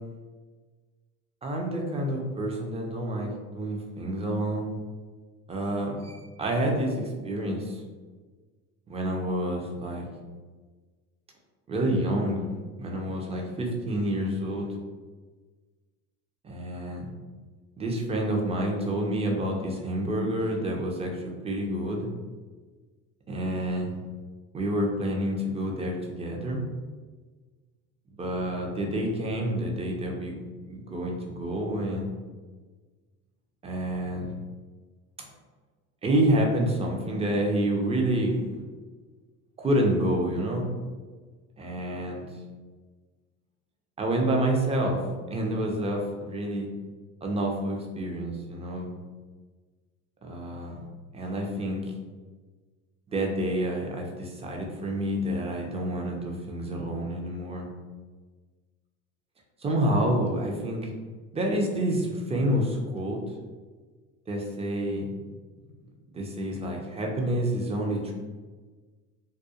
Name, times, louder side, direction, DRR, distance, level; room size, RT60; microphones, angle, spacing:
voice 1, 1.4-4.7 5.5-7.8 8.9-10.1 11.7-12.5 12.8-14.7 16.4-17.1 17.8-22.1 23.3-23.9 24.5-26.6 28.2-30.4 30.7-32.1 33.6-34.3 36.0-38.5 39.6-40.7 41.6-42.3 44.0-46.7 47.2-48.9 50.2-50.8 51.1-51.9 53.1-57.7 59.6-60.9 61.3-63.2 64.3-65.1 66.1-68.1, right 1 dB, 15° right, 1 dB, 0.5 m, -28 dB
2.3 x 2.2 x 2.8 m, 1.4 s
supercardioid pair, 90°, 37 cm